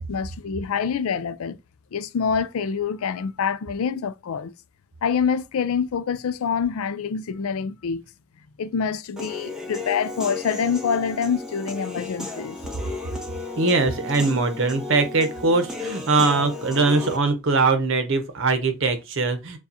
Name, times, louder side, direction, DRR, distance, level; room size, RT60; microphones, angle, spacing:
voice 1, 0.0-1.6 1.9-4.5 5.0-8.0 8.6-12.6, left 6 dB, 90° left, 0.4 m, -26 dB
Human voice / Piano, 9.2-17.2, left 3 dB, 5° right, 1.0 m, -34 dB
voice 2, 13.6-19.6, right 3 dB, 65° right, 0.8 m, -21 dB
6.9 x 2.3 x 2.8 m
head